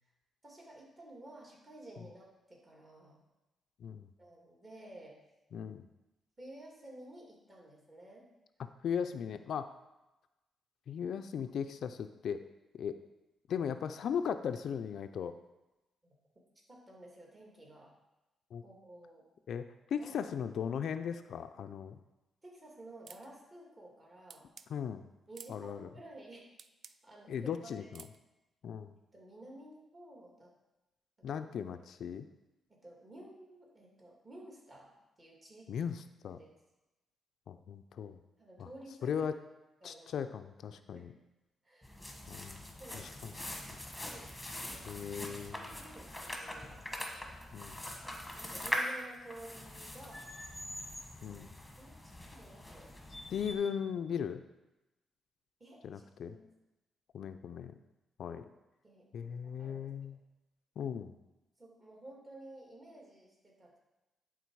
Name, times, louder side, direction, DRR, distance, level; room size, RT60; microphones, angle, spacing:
voice 1, 0.4-3.2 4.2-5.2 6.4-8.3 16.7-17.9 18.6-19.2 19.9-20.3 22.4-24.5 25.3-26.5 26.8-28.1 29.1-30.5 31.3-31.8 32.7-35.7 36.3-36.5 38.4-39.2 39.8-40.3 40.9-41.1 41.6-42.0 42.8-43.5 44.0-44.8 45.2-46.8 48.0-50.4 51.2-51.4 51.8-53.5 55.6-56.4 58.8-60.2 61.6-63.8, right 1 dB, 25° right, -2 dB, 2.2 m, -53 dB
voice 2, 5.5-5.9 8.8-9.7 10.9-12.4 12.8-13.0 13.5-15.4 18.5-18.6 19.5-22.0 24.7-25.1 25.5-25.9 27.3-28.1 28.6-28.9 31.2-32.3 35.7-36.4 37.5-38.2 38.6-38.7 39.0-39.3 39.8-41.1 42.3-42.6 42.9-43.3 43.7-43.8 44.9-45.6 47.5-47.8 51.2-51.5 53.3-54.4 55.8-56.4 57.1-57.7 58.2-58.4 59.1-60.2 60.8-61.1, left 7 dB, 70° left, 9 dB, 0.4 m, -37 dB
sound 1, 23.1-23.3 24.3-24.7 25.3-25.6 26.6-27.0 27.9-28.2, right 6 dB, 55° right, 0.3 m, -52 dB
sound 2, 41.8-53.5, left 1 dB, 5° left, 1.2 m, -42 dB
11.0 x 3.8 x 4.7 m, 1.0 s
cardioid pair, 90°, 0 cm